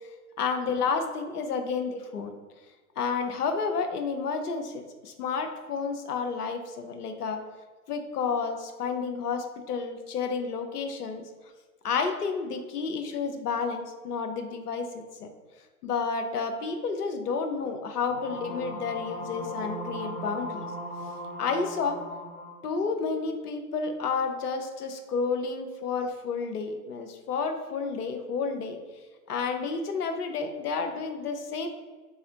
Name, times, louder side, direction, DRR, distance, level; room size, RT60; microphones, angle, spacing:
voice 1, 0.4-2.3 3.0-7.4 7.9-11.3 11.8-14.9 15.2-15.3 15.8-20.7 21.4-22.0 22.6-28.8 29.3-31.7, left 5 dB, 80° left, 5 dB, 0.7 m, -30 dB
sound 1, 18.1-22.6, equal, 20° left, 0.6 m, -37 dB
4.2 x 2.4 x 2.8 m, 1.3 s
hypercardioid pair, 115°, 46 cm